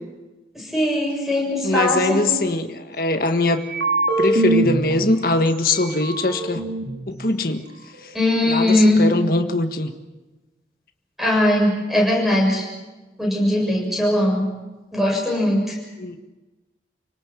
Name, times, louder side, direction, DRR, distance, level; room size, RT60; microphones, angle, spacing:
voice 1, 0.5-2.2 8.1-9.0 11.2-12.6 13.2-14.5 14.9-15.7, left 1 dB, ahead, -1 dB, 7.6 m, -20 dB
voice 2, 1.6-3.6 4.2-6.6 7.1-7.6 8.4-9.9 16.0-16.2, left 2 dB, 50° left, 6 dB, 1.6 m, -22 dB
sound 1, 3.6-4.9 5.5-5.6 5.8-7.1, right 2 dB, 85° right, 4.6 m, -22 dB
29.0 x 18.5 x 7.5 m, 1.2 s
head